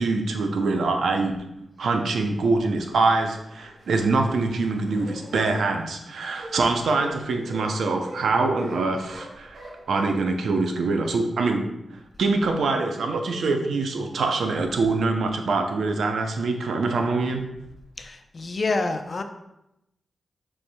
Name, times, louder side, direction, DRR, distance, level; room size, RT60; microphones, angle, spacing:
voice 1, 0.0-1.4 1.8-9.6 9.9-11.7 12.2-17.5, right 3 dB, 85° right, 4 dB, 0.5 m, -24 dB
sound 1, 2.8-2.9 3.5-5.6 6.1-10.0, right 1 dB, 65° right, 1.3 m, -42 dB
voice 2, 18.0-19.2, left 3 dB, 50° left, 6 dB, 0.5 m, -27 dB
6.9 x 3.3 x 2.2 m, 0.86 s
cardioid pair, 55°, 0 cm